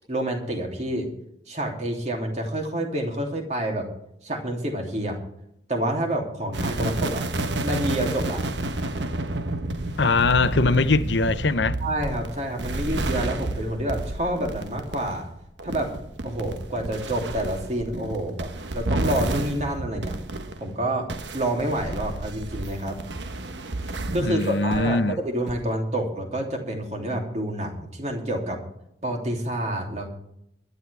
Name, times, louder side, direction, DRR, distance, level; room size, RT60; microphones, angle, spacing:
voice 1, 0.1-1.1 1.5-3.9 4.2-5.2 5.7-7.2 7.6-8.4 11.8-15.3 15.6-15.9 16.2-20.2 20.6-21.1 21.3-23.0 23.8-28.6 29.0-30.1, right 1 dB, 40° right, 3.0 m, -28 dB
sound 1, 6.5-20.7 21.1-25.0 25.5-25.6, right 2 dB, 80° right, 1.2 m, -31 dB
voice 2, 10.0-11.8 24.2-25.2, left 3 dB, 75° left, 0.8 m, -21 dB
24.0 x 11.0 x 3.5 m
head